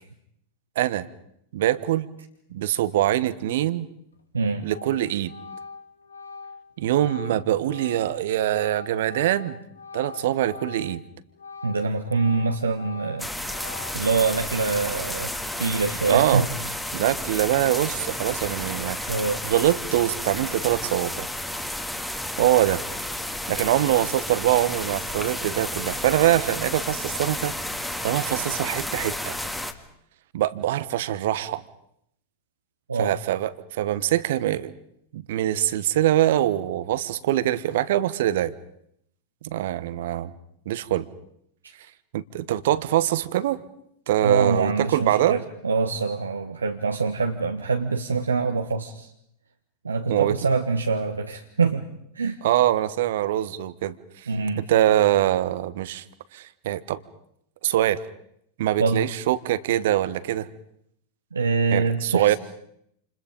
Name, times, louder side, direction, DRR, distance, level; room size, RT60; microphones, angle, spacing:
voice 1, 0.7-1.1 1.5-2.1 2.5-3.9 4.6-5.3 6.8-9.6 9.9-11.0 16.1-16.4 16.9-19.1 19.4-21.3 22.4-22.8 23.5-27.5 28.0-29.4 30.3-31.6 33.0-34.7 35.1-38.5 39.4-40.3 40.6-41.1 42.1-43.6 44.1-45.4 50.1-50.4 52.4-54.3 54.7-56.0 56.3-57.0 57.6-58.0 58.6-60.5 61.7-62.4, right 13 dB, 55° right, 16 dB, 1.3 m, -23 dB
Organ, 4.1-4.4 4.7-11.0 11.3-14.2, left 4 dB, 75° left, 2.4 m, -42 dB
voice 2, 4.3-4.7 11.6-13.7 13.9-16.8 19.1-19.4 32.9-33.2 44.2-49.1 49.8-51.9 52.1-52.4 54.3-54.7 58.8-59.1 61.3-62.4, right 4 dB, 75° right, 4 dB, 1.5 m, -25 dB
sound 1, 13.2-29.7, left 1 dB, 5° left, 2.2 m, -32 dB
29.0 x 28.5 x 5.3 m, 0.73 s
figure-of-eight pair, 90°, 0 cm